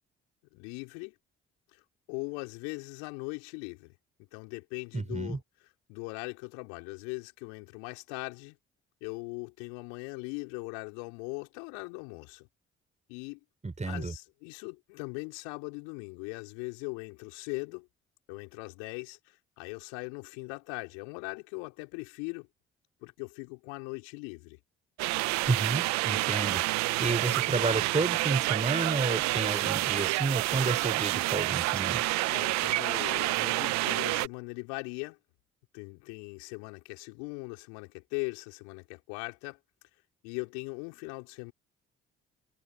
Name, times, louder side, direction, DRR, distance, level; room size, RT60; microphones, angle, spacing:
voice 1, 0.5-1.1 1.7-1.8 2.1-3.9 4.3-5.4 5.9-8.6 9.0-12.5 13.1-13.4 13.8-17.9 18.3-22.5 23.0-24.6 32.2-35.2 35.7-39.6 40.2-41.5, left 36 dB, 75° left, 5.3 m, -40 dB
voice 2, 4.9-5.4 13.6-14.1 25.5-26.6 27.0-32.0, right 3 dB, 25° right, 5.8 m, -31 dB
sound 1, 25.0-34.3, right 21 dB, 65° right, 1.1 m, -28 dB
figure-of-eight pair, 45°, 29 cm